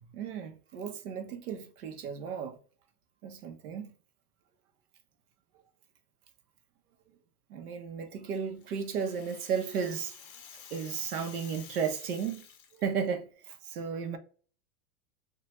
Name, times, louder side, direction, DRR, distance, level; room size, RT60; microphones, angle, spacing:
voice 1, 0.1-2.6 3.2-3.9 7.5-10.1 10.7-12.4 12.8-14.2, right 6 dB, 70° right, 0.8 m, -34 dB
Rattle (instrument), 8.3-13.1, left 7 dB, 35° left, 0.6 m, -51 dB
2.9 x 2.3 x 3.0 m
supercardioid pair, 170°, 46 cm